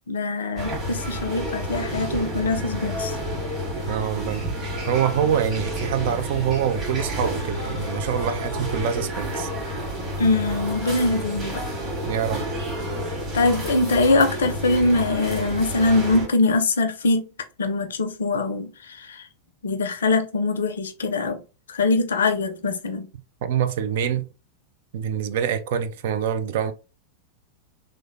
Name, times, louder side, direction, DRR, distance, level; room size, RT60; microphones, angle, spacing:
voice 1, 0.1-3.2 10.2-11.6 13.3-17.2 17.6-19.2 19.6-21.4 21.7-23.1, left 3 dB, 65° left, 0.4 m, -22 dB
sound 1, 0.6-16.3, equal, 25° right, 1.6 m, -30 dB
voice 2, 3.9-4.5 4.9-9.5 12.1-12.5 23.4-24.3 24.9-26.7, right 9 dB, 55° right, 0.3 m, -25 dB
3.0 x 2.0 x 2.5 m
figure-of-eight pair, 90°, 0 cm